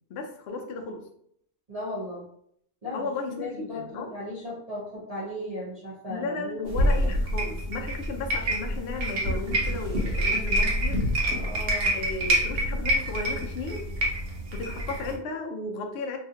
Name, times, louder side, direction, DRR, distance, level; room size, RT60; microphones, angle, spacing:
voice 1, 0.1-1.1 2.9-4.1 6.1-11.0 11.9-13.9 14.5-16.2, left 3 dB, 65° left, 3 dB, 0.7 m, -35 dB
voice 2, 1.7-2.2 2.8-7.1 11.3-12.0, left 1 dB, 35° right, -11 dB, 0.9 m, -36 dB
sound 1, 6.7-15.2, equal, 70° right, 1.1 m, -27 dB
2.8 x 2.4 x 2.7 m, 0.69 s
omnidirectional pair, 1.4 m